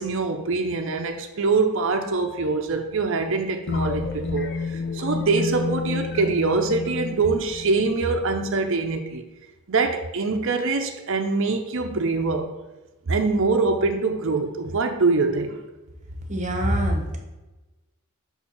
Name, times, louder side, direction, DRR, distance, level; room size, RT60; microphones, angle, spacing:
voice 1, 0.0-9.2 9.7-12.5 13.1-15.6, right 3 dB, 60° right, 5 dB, 0.6 m, -24 dB
sound 1, 3.7-8.4, left 4 dB, 50° left, 0.6 m, -30 dB
voice 2, 16.3-17.2, equal, 35° right, 2 dB, 1.0 m, -24 dB
5.5 x 4.4 x 5.9 m, 1.1 s
head